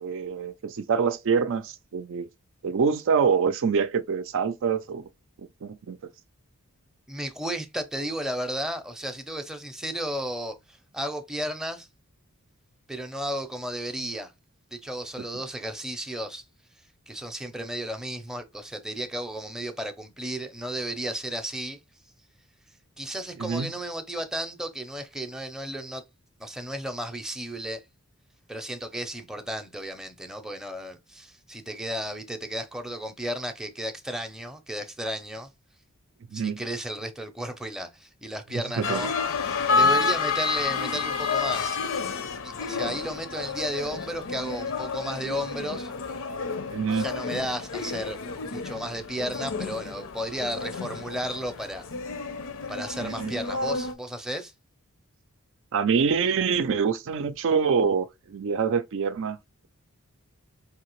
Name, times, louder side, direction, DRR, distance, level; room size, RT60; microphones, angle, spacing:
voice 1, 0.0-2.3 2.6-5.1 5.6-6.0 23.4-23.7 36.3-36.6 38.5-39.0 46.7-47.1 53.0-53.3 55.7-59.4, right 6 dB, 60° right, 0.4 m, -25 dB
voice 2, 7.1-11.9 12.9-14.3 14.7-16.4 17.1-21.8 23.0-26.0 26.4-27.8 28.5-35.5 36.3-39.1 39.5-41.8 42.4-45.9 46.9-48.2 48.5-51.8 52.7-54.5, equal, 5° right, 0.6 m, -33 dB
sound 1, 38.8-53.9, left 4 dB, 65° left, 0.7 m, -30 dB
4.8 x 2.8 x 3.0 m
head